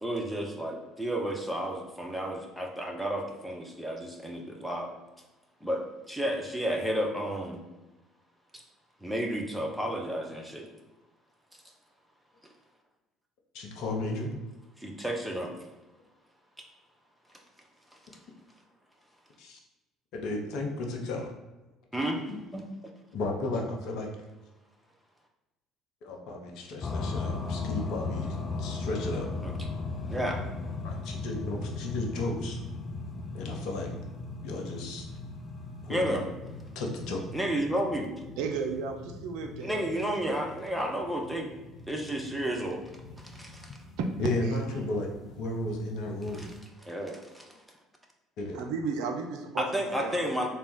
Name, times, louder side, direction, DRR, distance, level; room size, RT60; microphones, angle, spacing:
voice 1, 0.0-4.9 5.6-7.6 8.5-8.6 9.0-10.7 14.8-15.5 21.9-22.2 22.5-22.6 29.4-29.5 30.1-30.4 35.9-36.2 37.3-38.1 39.6-41.5 41.9-42.8 43.2-43.8 46.3-46.5 46.8-47.5 49.6-50.5, right 1 dB, 5° right, 0 dB, 0.8 m, -32 dB
voice 2, 13.5-14.3 19.4-19.6 20.1-21.3 22.3-22.4 23.1-24.1 26.0-29.3 30.8-32.6 33.3-33.9 34.4-35.0 35.8-36.3 36.7-37.2 44.2-46.5 48.4-48.6, left 2 dB, 60° left, 1 dB, 0.7 m, -34 dB
sound 1, 26.8-46.6, left 3 dB, 35° left, 0.4 m, -38 dB
voice 3, 38.4-39.9 44.0-44.1 44.4-44.5 48.5-50.5, right 5 dB, 65° right, 4 dB, 0.4 m, -34 dB
3.4 x 2.2 x 4.0 m, 1.1 s
figure-of-eight pair, 55°, 0 cm